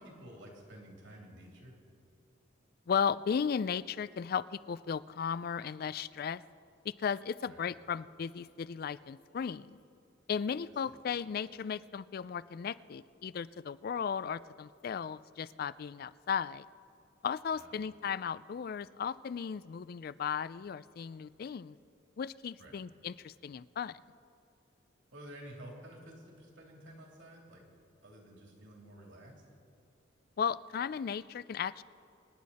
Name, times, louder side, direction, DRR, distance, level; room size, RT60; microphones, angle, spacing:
voice 1, 0.0-1.7 7.5-7.7 10.8-10.9 17.5-17.8 22.6-22.8 25.1-27.7 28.0-29.4, right 1 dB, 70° right, -1 dB, 3.2 m, -51 dB
voice 2, 2.9-6.4 6.8-9.8 10.3-16.7 17.2-21.8 22.2-24.0 30.4-31.8, left 7 dB, 50° left, 18 dB, 0.3 m, -35 dB
25.0 x 10.5 x 4.2 m, 2.7 s
head